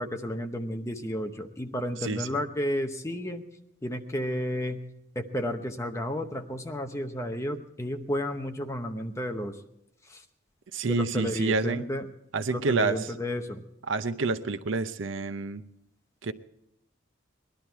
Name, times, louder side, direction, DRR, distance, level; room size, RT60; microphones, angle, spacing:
voice 1, 0.0-3.4 3.8-4.8 5.2-9.6 10.1-10.2 10.8-12.1 12.5-13.6, left 1 dB, 15° left, 5 dB, 0.8 m, -32 dB
voice 2, 2.0-2.4 10.7-11.8 12.3-13.1 13.9-15.6 16.2-16.3, right 3 dB, 75° right, 12 dB, 0.7 m, -28 dB
20.0 x 11.5 x 4.6 m, 0.80 s
head